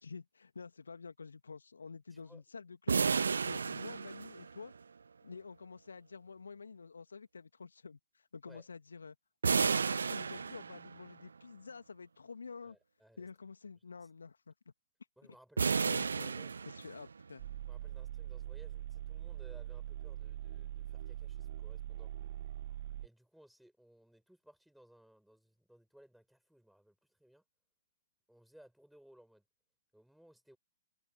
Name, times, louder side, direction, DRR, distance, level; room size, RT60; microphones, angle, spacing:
voice 1, 0.0-3.1 3.4-4.7 5.2-9.2 9.4-12.8 13.2-14.7 15.9-16.4 16.7-17.4, left 5 dB, 70° left, 1.9 m, -49 dB
voice 2, 2.1-2.4 8.4-8.6 12.6-13.3 15.2-16.6 17.7-22.1 23.0-27.4 28.3-29.4 29.9-30.6, equal, ahead, 7.3 m, -62 dB
sound 1, 2.9-4.8 9.4-11.1 15.6-17.2, right 5 dB, 70° right, 1.1 m, -32 dB
sound 2, 17.4-23.1, right 13 dB, 50° right, 1.5 m, -43 dB
figure-of-eight pair, 115°, 0 cm